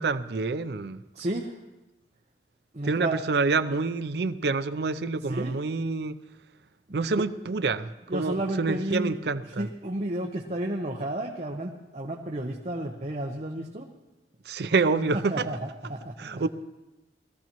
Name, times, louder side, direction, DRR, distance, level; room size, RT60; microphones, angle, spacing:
voice 1, 0.0-1.0 2.8-6.2 6.9-9.7 14.5-15.5 16.2-16.5, right 4 dB, 65° right, 13 dB, 0.5 m, -27 dB
voice 2, 1.1-1.5 2.7-3.2 5.3-5.6 8.1-9.2 9.6-13.9 15.3-16.4, right 1 dB, 40° right, 1 dB, 0.8 m, -32 dB
20.5 x 14.5 x 3.0 m, 1.0 s
head